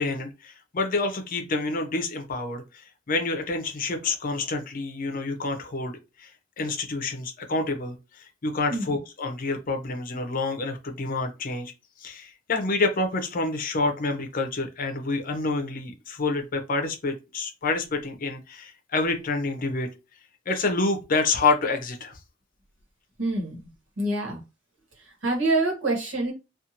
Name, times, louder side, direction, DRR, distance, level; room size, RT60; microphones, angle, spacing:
voice 1, 0.0-6.3 6.6-11.7 12.0-19.9 20.5-22.2, left 3 dB, 45° left, 0.6 m, -28 dB
voice 2, 8.7-9.0 23.2-23.7 24.0-24.4 25.0-26.3, right 2 dB, 85° right, 1.2 m, -26 dB
2.5 x 2.4 x 2.8 m
head